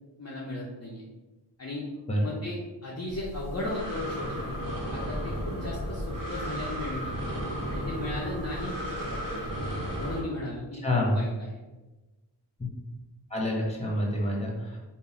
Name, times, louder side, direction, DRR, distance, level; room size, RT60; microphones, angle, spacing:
voice 1, 0.2-1.0 1.6-1.8 2.2-4.6 4.9-7.1 7.7-9.5 10.0-10.8 11.1-11.6, left 2 dB, 35° left, -5 dB, 0.6 m, -36 dB
Breathing, 3.1-10.2, equal, 50° right, 1.1 m, -34 dB
voice 2, 10.8-11.2 13.3-14.8, left 1 dB, 15° left, -2 dB, 1.1 m, -27 dB
3.8 x 2.2 x 4.2 m, 1.1 s
wide cardioid pair, 55°, 43 cm